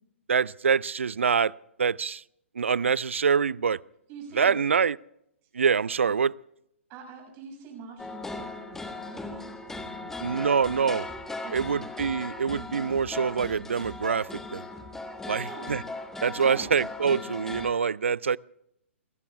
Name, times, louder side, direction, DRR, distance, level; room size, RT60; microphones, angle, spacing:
voice 1, 0.3-1.5 1.8-2.2 2.6-3.8 4.4-5.0 5.5-6.3 10.2-11.1 11.5-14.7 15.3-15.8 16.2-18.4, right 6 dB, 70° right, 0.4 m, -25 dB
voice 2, 4.1-4.6 6.0-6.2 6.9-10.3 11.4-11.8 15.0-15.7 16.3-16.8, right 5 dB, 30° right, 6.5 m, -45 dB
sound 1, 8.0-17.7, left 3 dB, 5° left, 1.3 m, -38 dB
29.0 x 15.5 x 2.4 m
figure-of-eight pair, 120°, 7 cm